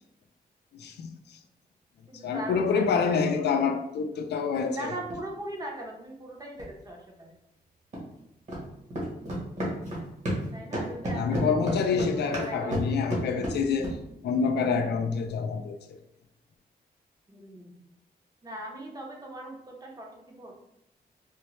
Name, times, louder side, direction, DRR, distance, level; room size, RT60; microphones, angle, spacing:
voice 1, 0.7-1.4 2.2-4.9 11.1-14.0 14.2-16.0, left 5 dB, 80° left, 0.4 m, -27 dB
voice 2, 2.1-3.6 4.8-7.3 10.5-13.1 17.3-17.8 18.4-20.5, right 1 dB, 20° right, 0.7 m, -40 dB
sound 1, 5.1-5.2 6.6-6.7 7.9-8.0 8.5-8.6 8.9-10.5 10.7-14.0, right 1 dB, 45° right, 1.2 m, -31 dB
3.7 x 2.1 x 3.0 m
wide cardioid pair, 140°, 17 cm